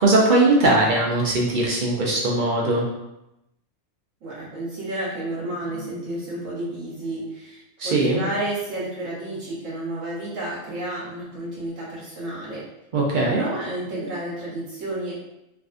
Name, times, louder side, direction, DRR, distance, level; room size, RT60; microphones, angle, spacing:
voice 1, 0.0-2.9 7.8-8.2 12.9-13.4, right 2 dB, 55° right, -3 dB, 0.6 m, -20 dB
voice 2, 4.2-12.7 13.4-15.1, right 1 dB, 75° right, -7 dB, 1.2 m, -31 dB
3.6 x 2.5 x 2.4 m, 0.89 s
omnidirectional pair, 1.3 m